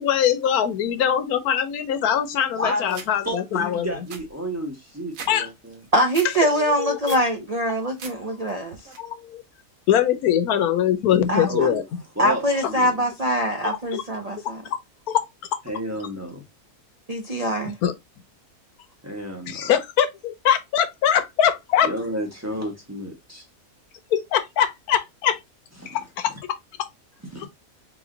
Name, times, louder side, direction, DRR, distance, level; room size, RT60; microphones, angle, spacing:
voice 1, 0.0-3.9 5.3-5.5 6.8-7.2 9.0-9.4 9.9-11.8 13.9-14.0 15.1-15.2 17.6-17.9 19.5-21.9 24.1-25.4 25.9-26.3 27.4-27.5, left 9 dB, 85° left, 1.2 m, -22 dB
voice 2, 2.6-5.8 11.5-11.8 12.2-13.0 15.7-16.4 19.0-19.7 21.8-23.4 25.8-26.0 27.3-27.5, equal, 10° right, 0.9 m, -31 dB
sound 1, 2.9-3.1 3.6-3.7 3.9-5.3 5.7-6.3 6.7-7.3 7.7-8.1 8.5-9.0, right 5 dB, 65° right, 1.3 m, -39 dB
voice 3, 5.9-8.8 11.3-11.7 12.2-14.6 17.1-17.7, right 1 dB, 90° right, 0.3 m, -23 dB
3.8 x 3.0 x 3.7 m
omnidirectional pair, 1.6 m